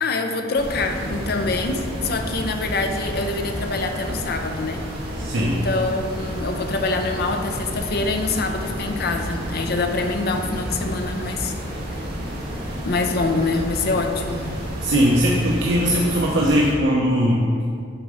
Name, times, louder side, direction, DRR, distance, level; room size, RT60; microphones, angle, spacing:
voice 1, 0.0-4.8 5.4-11.5 12.8-14.5, left 3 dB, 55° left, 5 dB, 0.6 m, -25 dB
sound 1, 0.5-16.7, equal, 55° right, 1.4 m, -30 dB
voice 2, 5.2-5.6 14.8-17.5, equal, 75° right, -3 dB, 0.7 m, -19 dB
7.1 x 4.2 x 4.9 m, 2.2 s
head